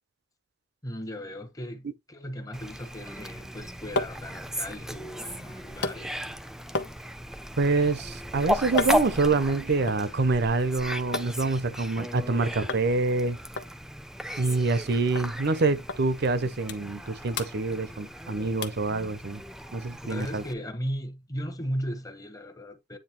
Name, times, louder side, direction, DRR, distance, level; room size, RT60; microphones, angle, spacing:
voice 1, 0.8-6.2 20.1-23.0, equal, 20° left, 1.0 m, -36 dB
Fowl, 2.5-20.5, equal, 5° right, 0.5 m, -36 dB
sound 1, 3.7-11.3 11.6-12.3 12.7-12.9 13.2-13.3 13.6-14.9 15.2-15.3 15.9-16.0 16.4-17.1 17.3-18.2 18.6-18.9 19.4-19.5, left 3 dB, 65° left, 1.0 m, -36 dB
voice 2, 7.6-13.4 14.4-19.4 19.7-20.4, right 3 dB, 60° right, 0.7 m, -26 dB
8.9 x 3.2 x 4.4 m
head